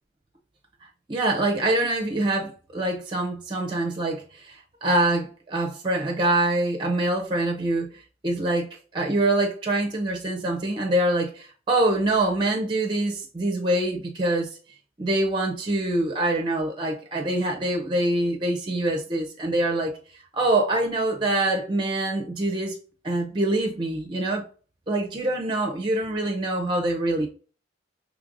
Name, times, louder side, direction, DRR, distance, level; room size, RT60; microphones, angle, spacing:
voice 1, 1.1-14.5 15.0-19.9 20.3-22.7 23.0-24.4 24.9-27.3, right 2 dB, 25° right, 0.5 m, -25 dB
5.0 x 3.2 x 2.5 m
head